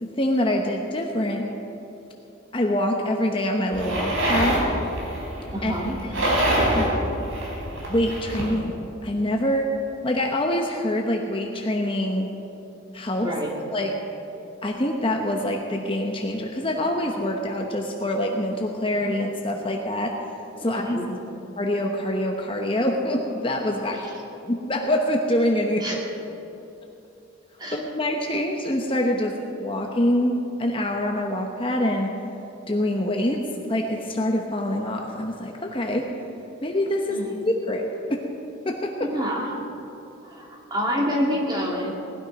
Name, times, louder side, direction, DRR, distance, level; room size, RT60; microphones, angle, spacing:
voice 1, 0.0-1.5 2.5-4.7 5.6-5.7 6.0-6.5 6.8-6.9 7.9-8.7 9.0-9.7 10.0-12.3 12.9-13.3 13.7-13.9 14.6-20.2 20.6-21.0 21.6-24.0 24.4-26.0 27.7-32.1 32.7-36.1 36.6-37.2 37.5-37.8 38.1-38.2 38.6-39.1, left 1 dB, 25° left, 1 dB, 0.9 m, -25 dB
sound 1, 3.7-8.5, right 1 dB, 85° right, 4.0 m, -25 dB
voice 2, 5.5-6.0 13.2-13.5 20.8-21.1 23.9-24.2 25.8-26.0 27.6-27.8 37.1-37.2 39.0-39.6 40.2-41.9, equal, 20° right, -2 dB, 2.3 m, -27 dB
19.0 x 12.5 x 5.3 m, 2.9 s
head